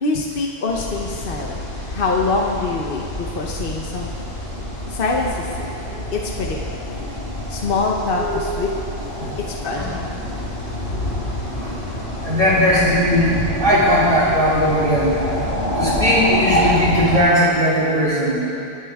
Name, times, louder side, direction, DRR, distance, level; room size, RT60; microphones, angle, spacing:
voice 1, 0.0-4.4 4.9-5.7 6.1-7.0 7.5-8.7 9.4-10.1, left 3 dB, 60° left, -1 dB, 1.2 m, -25 dB
sound 1, 0.7-17.2, left 1 dB, 90° left, 4.0 m, -27 dB
voice 2, 8.2-8.7 9.2-9.3 9.8-9.9 11.6-11.7 12.2-15.5 15.8-18.4, equal, 55° right, -8 dB, 4.0 m, -18 dB
24.5 x 10.0 x 3.6 m, 2.8 s
omnidirectional pair, 1.0 m